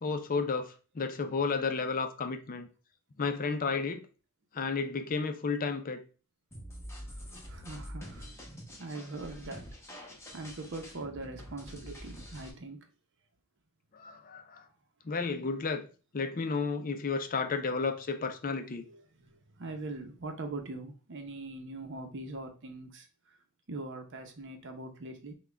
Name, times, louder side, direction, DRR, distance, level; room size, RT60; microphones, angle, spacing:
voice 1, 0.0-2.7 3.2-4.1 4.5-6.0 13.9-14.6 15.0-15.9 16.1-18.8, left 4 dB, 40° left, 0.5 m, -32 dB
Mashed Breaks, 6.5-12.5, equal, 10° left, 1.0 m, -46 dB
voice 2, 7.1-8.3 8.8-9.6 10.3-12.9 18.7-23.4 23.7-25.3, right 2 dB, 55° right, 0.8 m, -42 dB
5.9 x 2.3 x 3.4 m
head